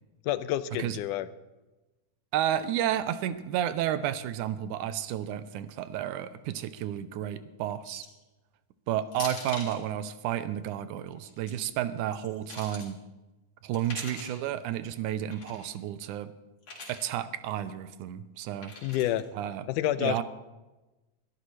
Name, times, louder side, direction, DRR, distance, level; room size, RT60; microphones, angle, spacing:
voice 1, 0.2-1.3 18.8-19.3 19.7-20.2, left 13 dB, 90° left, 14 dB, 2.2 m, -28 dB
voice 2, 2.3-8.1 8.9-13.0 13.6-16.3 16.9-18.7 19.4-19.6 20.0-20.2, right 11 dB, 80° right, 13 dB, 2.2 m, -31 dB
sound 1, 7.9-8.2 9.1-9.8 11.2-11.5 12.1-12.9 13.7-14.4 15.3-15.7 16.6-17.1 18.6-19.2, left 3 dB, 55° left, 4.0 m, -42 dB
21.5 x 13.0 x 3.2 m, 1.1 s
omnidirectional pair, 3.6 m